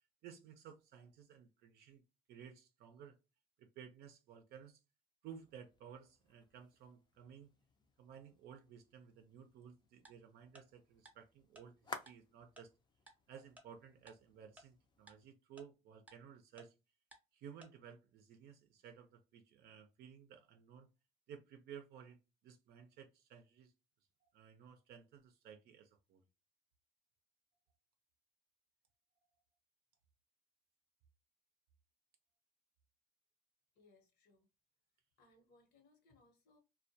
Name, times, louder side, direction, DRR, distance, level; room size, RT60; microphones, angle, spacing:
voice 1, 0.2-2.0 2.3-3.2 3.6-4.8 5.2-7.5 8.0-12.7 13.3-16.7 17.3-20.9 21.3-23.7 24.3-26.2, right 8 dB, 70° right, 0.5 m, -56 dB
sound 1, 5.2-15.3, left 4 dB, 25° left, 0.4 m, -57 dB
Tick-tock, 10.1-10.2 10.6-10.7 11.1-11.2 11.6-11.7 12.1-12.2 12.6-12.7 13.1-13.2 13.6-13.7 14.1-14.2 14.6-14.7 15.1-15.2 15.6-15.7 16.1-16.2 16.6-16.7 17.1-17.2 17.6-17.7, right 1 dB, 10° right, 0.7 m, -58 dB
voice 2, 33.7-34.5 35.2-36.6, left 2 dB, 75° left, 1.0 m, -69 dB
2.2 x 2.1 x 2.6 m
cardioid pair, 110°, 17 cm